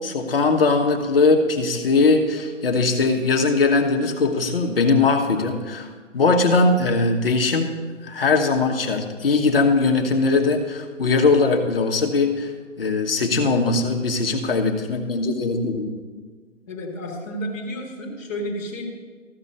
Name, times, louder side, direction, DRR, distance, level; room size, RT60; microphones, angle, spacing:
voice 1, 0.0-5.9 6.1-7.7 8.0-12.5 12.8-16.0, left 3 dB, 45° left, 4 dB, 1.3 m, -20 dB
voice 2, 16.7-18.8, equal, 10° left, -6 dB, 1.5 m, -31 dB
14.0 x 6.1 x 5.5 m, 1.5 s
hypercardioid pair, 165°, 39 cm